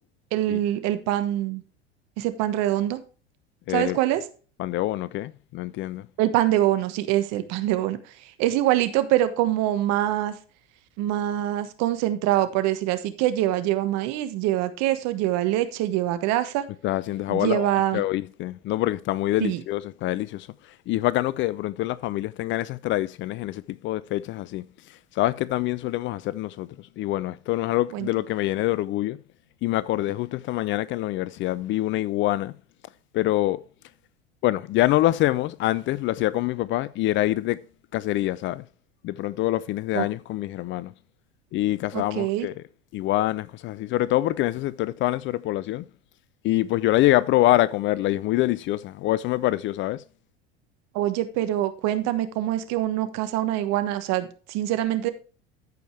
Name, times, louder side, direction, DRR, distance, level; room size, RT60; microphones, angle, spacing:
voice 1, 0.3-1.6 2.2-3.0 3.7-4.2 6.2-8.0 8.4-10.3 11.0-16.7 17.3-18.0 19.4-19.6 27.9-28.1 39.9-40.1 41.9-42.5 50.9-55.1, right 13 dB, 55° right, 1.3 m, -24 dB
voice 2, 3.7-4.0 4.6-6.1 16.8-20.5 20.9-24.7 25.2-29.2 29.6-32.5 33.1-33.6 34.4-37.6 37.9-38.6 39.0-40.9 41.5-42.5 42.9-45.9 46.4-50.0, left 16 dB, 40° left, 0.4 m, -25 dB
14.0 x 5.2 x 3.3 m
hypercardioid pair, 85°, 32 cm